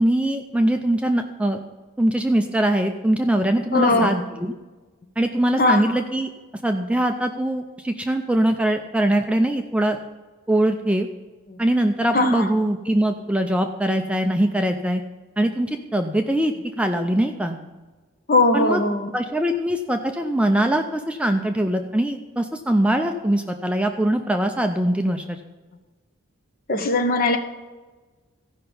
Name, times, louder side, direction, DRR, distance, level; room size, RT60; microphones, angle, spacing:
voice 1, 0.0-1.6 2.0-4.5 5.2-6.3 6.6-10.0 10.5-11.1 11.6-15.0 15.4-17.6 18.5-18.8 19.1-25.4, right 1 dB, 5° right, 5 dB, 0.4 m, -22 dB
voice 2, 3.7-4.1 5.6-6.0 11.5-11.6 12.1-12.4 18.3-19.1 26.7-27.4, left 2 dB, 40° left, 6 dB, 1.0 m, -20 dB
14.5 x 5.7 x 5.4 m, 1.3 s
head